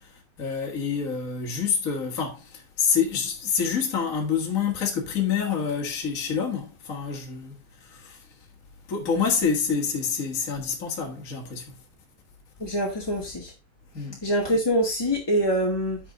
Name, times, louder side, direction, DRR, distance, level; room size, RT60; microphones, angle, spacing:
voice 1, 0.0-8.2 8.9-11.8 13.9-14.2, left 6 dB, 35° left, 1.5 m, -27 dB
voice 2, 12.6-13.5 14.2-16.0, equal, 10° left, 1.2 m, -24 dB
10.0 x 5.2 x 4.0 m
omnidirectional pair, 3.7 m